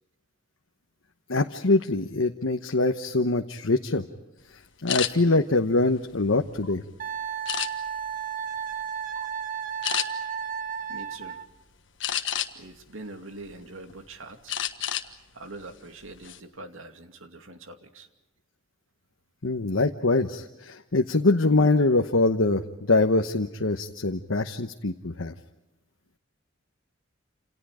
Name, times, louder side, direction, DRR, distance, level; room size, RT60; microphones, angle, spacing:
voice 1, 1.3-4.0 4.8-6.8 19.4-25.3, left 2 dB, 85° left, 5 dB, 1.1 m, -23 dB
sound 1, 4.9-5.1 5.7-6.7 7.5-8.0 8.6-8.8 9.2-9.3 9.8-10.1 12.0-12.7 13.2-14.0 14.5-15.1 15.4-15.6 16.0-16.4, left 10 dB, 65° left, 1.5 m, -30 dB
Wind instrument woodwind instrument, 7.0-11.5, right 8 dB, 45° right, 1.3 m, -33 dB
voice 2, 10.9-11.4 12.5-14.6 15.0-18.1, right 2 dB, 80° right, 6 dB, 2.5 m, -44 dB
29.0 x 28.5 x 5.0 m, 1.0 s
head